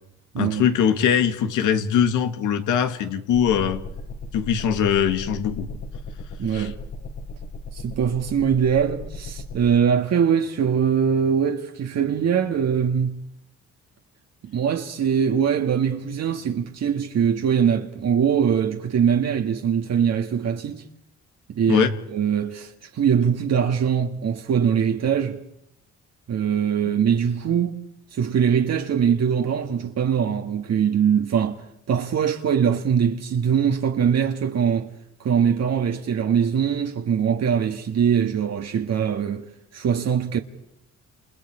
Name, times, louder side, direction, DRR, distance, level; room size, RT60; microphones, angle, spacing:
voice 1, 0.4-3.8 4.3-5.7 6.5-6.7 21.7-21.9, left 8 dB, 85° left, 2.0 m, -21 dB
sound 1, 3.3-9.8, left 2 dB, 65° left, 4.5 m, -36 dB
voice 2, 6.4-6.8 7.7-13.2 14.4-20.9 21.5-25.4 26.3-27.8 28.1-34.9 35.2-39.5 39.7-40.4, right 7 dB, 60° right, 1.6 m, -22 dB
30.0 x 28.5 x 4.9 m
cardioid pair, 90°, 30 cm